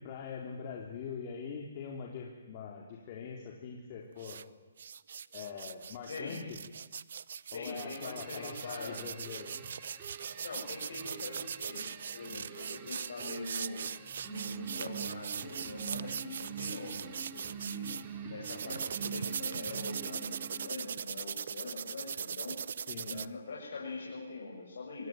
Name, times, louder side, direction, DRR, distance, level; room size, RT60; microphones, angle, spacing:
voice 1, 0.0-4.4 5.3-6.6 7.5-9.5 18.2-18.4 22.9-23.3, left 6 dB, 40° left, -1 dB, 3.9 m, -43 dB
sound 1, 4.2-4.4 4.8-18.0 18.4-23.3, right 7 dB, 65° right, 0.8 m, -40 dB
voice 2, 6.1-6.5 7.5-9.0 10.4-13.9 14.3-22.6 23.0-25.1, left 3 dB, 70° left, -3 dB, 7.6 m, -43 dB
sound 2, 7.8-20.9, right 6 dB, 30° right, 3.7 m, -45 dB
25.5 x 20.5 x 9.3 m, 1.3 s
hypercardioid pair, 145°, 0 cm